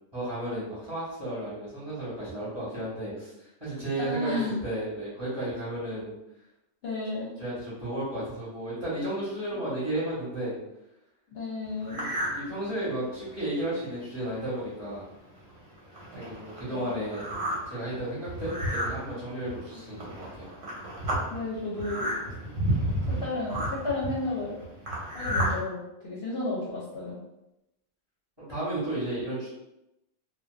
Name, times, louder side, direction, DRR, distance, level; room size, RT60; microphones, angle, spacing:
voice 1, 0.1-6.1 7.4-10.6 11.9-15.0 16.1-17.2 17.7-20.5 28.4-29.5, right 1 dB, 20° right, -10 dB, 0.9 m, -33 dB
voice 2, 4.0-4.6 6.8-7.3 9.5-9.6 11.3-12.0 16.7-17.0 19.7-19.8 21.3-22.3 23.1-24.6 25.1-27.2, left 2 dB, 60° left, -6 dB, 0.8 m, -33 dB
sound 1, 11.8-12.4 12.9-13.0 13.6-13.7 13.9-14.2 14.9-15.0 15.4-25.6, right 1 dB, 70° right, 1.1 m, -32 dB
2.4 x 2.3 x 2.3 m, 0.89 s
omnidirectional pair, 1.3 m